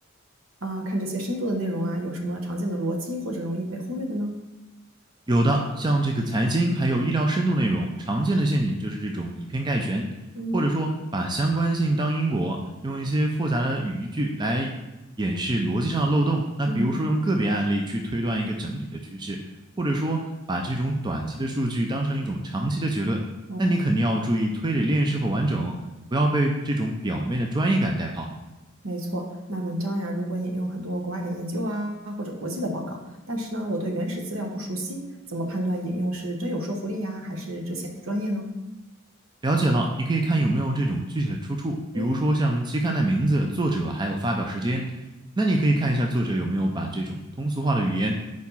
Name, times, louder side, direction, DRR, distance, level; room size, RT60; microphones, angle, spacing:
voice 1, 0.6-4.4 10.3-10.6 16.7-16.9 23.5-23.8 28.8-33.0 33.3-35.0 35.3-38.4 41.9-42.1, right 1 dB, 70° right, 2 dB, 1.1 m, -29 dB
voice 2, 5.3-10.1 10.5-14.7 15.2-19.4 19.8-23.2 23.6-25.7 26.1-28.3 39.4-44.9 45.4-48.1, right 1 dB, 20° right, 2 dB, 0.4 m, -25 dB
4.7 x 4.6 x 5.4 m, 1.0 s
head